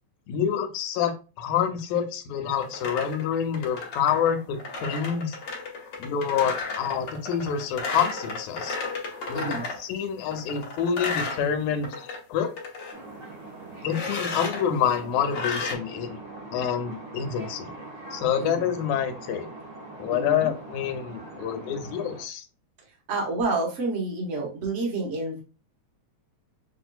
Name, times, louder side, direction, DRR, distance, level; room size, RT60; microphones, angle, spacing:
voice 1, 0.3-5.4 6.0-8.8 9.3-12.0 12.3-12.5 13.8-16.2 16.5-17.7 18.1-19.5 20.0-22.4, left 8 dB, 85° left, 6 dB, 2.0 m, -27 dB
sound 1, 2.5-9.8 10.3-12.2 12.5-13.0 13.9-14.6 15.3-15.8, left 3 dB, 65° left, 1.2 m, -33 dB
voice 2, 9.3-9.7 18.4-18.7 20.1-20.5 23.1-25.4, right 2 dB, 85° right, -2 dB, 0.6 m, -29 dB
sound 2, 12.9-22.2, right 2 dB, 55° right, 1.2 m, -42 dB
6.4 x 2.5 x 2.2 m, 0.32 s
omnidirectional pair, 3.3 m